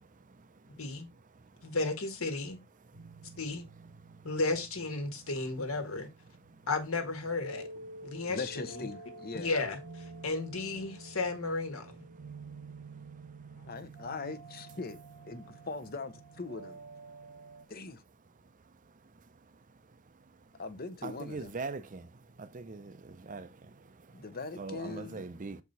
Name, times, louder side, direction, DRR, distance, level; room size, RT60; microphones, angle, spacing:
voice 1, 0.8-1.1 1.6-2.6 3.4-3.6 4.2-6.1 6.7-7.7 8.0-8.9 9.3-12.0, left 3 dB, 65° left, 1.5 m, -34 dB
sound 1, 2.9-17.6, right 3 dB, 70° right, 1.0 m, -50 dB
voice 2, 8.3-9.5 13.6-15.0 15.3-16.8 17.7-18.0 20.6-21.5 24.1-25.3, left 3 dB, 40° left, 0.8 m, -40 dB
voice 3, 21.0-22.0 22.4-22.9 23.3-23.5 24.6-25.6, right 3 dB, 35° right, 0.6 m, -40 dB
7.0 x 4.7 x 4.0 m
head